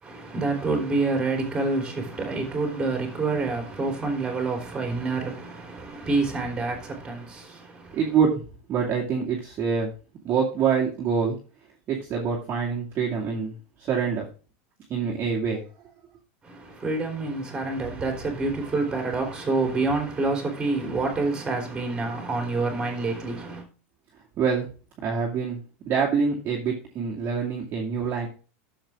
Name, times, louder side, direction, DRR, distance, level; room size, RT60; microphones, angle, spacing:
voice 1, 0.0-8.0 16.4-23.6, right 3 dB, 10° right, 3.5 m, -27 dB
voice 2, 7.9-8.3 8.7-9.9 10.2-11.4 11.9-14.3 14.9-15.6 24.4-24.6 25.0-25.6 25.9-28.3, right 6 dB, 25° right, 2.3 m, -25 dB
12.0 x 7.3 x 3.6 m
supercardioid pair, 165°, 7 cm